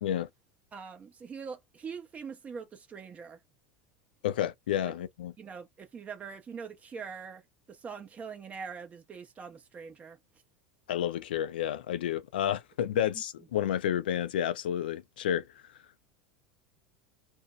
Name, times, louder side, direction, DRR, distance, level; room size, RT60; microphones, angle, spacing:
voice 1, 0.7-3.4 4.8-4.9 5.4-7.4 7.7-10.2 12.9-13.2, right 6 dB, 25° right, 0.8 m, -43 dB
voice 2, 4.2-5.3 10.9-15.5, left 10 dB, 85° left, 0.4 m, -30 dB
2.5 x 2.1 x 2.4 m
hypercardioid pair, 100°, 5 cm